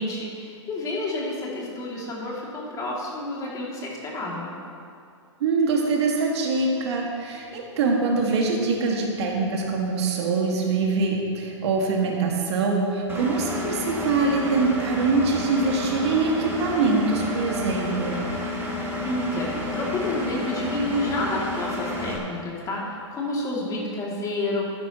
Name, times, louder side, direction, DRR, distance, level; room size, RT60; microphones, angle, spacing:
voice 1, 0.0-4.5 19.0-24.7, left 2 dB, 20° left, -4 dB, 2.7 m, -29 dB
voice 2, 5.4-18.3, right 3 dB, 60° right, 0 dB, 2.0 m, -24 dB
Engine, 13.1-22.2, left 1 dB, 15° right, 1.8 m, -30 dB
14.0 x 10.0 x 3.1 m, 2.4 s
hypercardioid pair, 120°, 16 cm